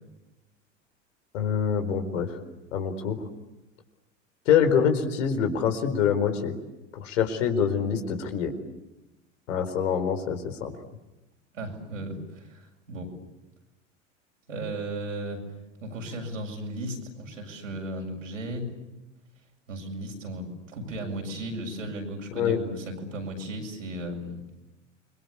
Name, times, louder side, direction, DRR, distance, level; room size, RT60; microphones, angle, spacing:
voice 1, 1.3-2.3 2.7-3.2 4.5-6.5 6.9-8.5 9.5-10.7 22.4-22.6, left 7 dB, 75° left, 7 dB, 4.5 m, -25 dB
voice 2, 11.5-13.1 14.5-15.5 15.8-18.7 19.7-24.4, right 1 dB, 90° right, 2 dB, 7.3 m, -35 dB
29.0 x 23.0 x 8.4 m, 1.0 s
hypercardioid pair, 85°, 37 cm